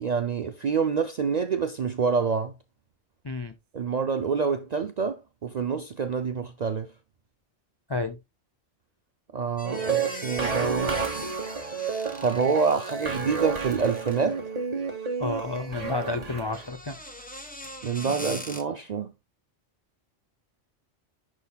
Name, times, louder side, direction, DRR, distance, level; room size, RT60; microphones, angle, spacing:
voice 1, 0.0-2.5 3.7-6.9 9.3-11.1 12.2-14.4 17.8-19.1, right 5 dB, 60° right, 0.4 m, -27 dB
voice 2, 3.2-3.5 7.9-8.2 15.2-17.0, left 3 dB, 45° left, 0.3 m, -30 dB
sound 1, 9.6-14.4 16.4-18.6, left 1 dB, 10° left, 0.8 m, -42 dB
sound 2, 9.6-16.7, right 5 dB, 35° right, 1.3 m, -31 dB
11.0 x 4.2 x 2.2 m
omnidirectional pair, 1.3 m